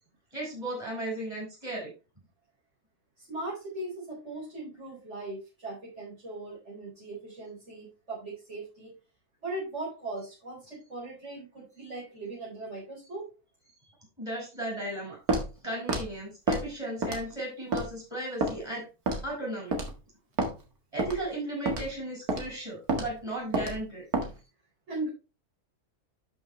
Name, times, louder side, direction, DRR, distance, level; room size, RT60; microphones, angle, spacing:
voice 1, 0.3-1.9 14.2-15.2 15.6-18.9 19.2-19.8 20.9-24.0, right 1 dB, 15° right, -4 dB, 5.2 m, -35 dB
voice 2, 3.3-8.9 9.4-13.3 24.9-25.1, right 2 dB, 50° right, -7 dB, 4.6 m, -39 dB
Walk footsteps, 15.3-15.5 15.9-16.1 16.5-16.6 17.0-17.3 17.7-17.9 18.4-18.5 19.1-19.3 19.7-19.9 20.4-20.5 21.0-21.2 21.7-21.9 22.3-22.4 22.9-23.1 23.5-23.8 24.1-24.3, right 2 dB, 80° right, 2.3 m, -28 dB
11.5 x 6.0 x 3.1 m, 0.30 s
omnidirectional pair, 1.6 m